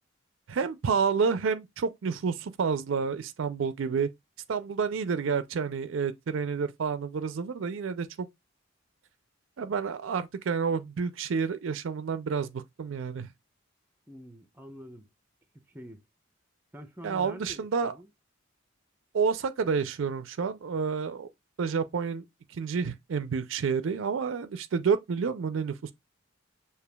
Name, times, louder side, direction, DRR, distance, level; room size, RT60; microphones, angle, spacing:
voice 1, 0.5-4.1 4.5-8.3 9.6-13.3 17.0-17.9 19.1-21.3 21.6-22.2 22.5-25.9, right 5 dB, 70° right, 0.4 m, -29 dB
voice 2, 14.1-15.1 15.7-16.0 16.7-18.1, equal, 10° right, 0.5 m, -46 dB
6.7 x 2.8 x 2.2 m
head